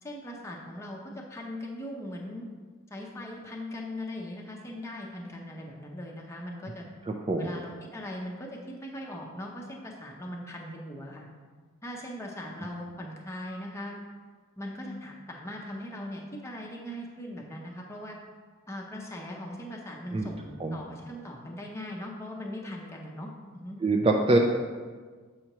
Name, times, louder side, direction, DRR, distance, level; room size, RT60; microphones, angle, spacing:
voice 1, 0.0-2.5 2.9-6.9 7.4-11.3 11.8-14.0 14.6-18.2 18.7-23.8, left 1 dB, 15° left, -1 dB, 0.6 m, -40 dB
voice 2, 7.1-7.5 20.1-20.3 20.6-20.8 23.8-24.4, right 2 dB, 25° right, 1 dB, 0.3 m, -24 dB
7.6 x 5.5 x 3.0 m, 1.5 s
head